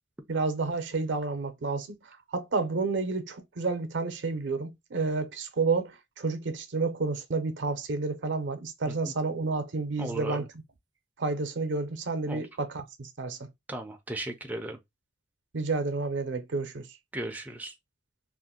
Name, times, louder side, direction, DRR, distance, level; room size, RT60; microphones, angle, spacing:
voice 1, 0.3-2.0 2.3-10.4 11.2-13.4 15.5-16.9, right 3 dB, 75° right, 0.6 m, -30 dB
voice 2, 10.0-10.5 12.3-12.4 13.7-14.8 17.1-17.8, right 1 dB, 10° right, 0.4 m, -36 dB
2.5 x 2.1 x 3.6 m
head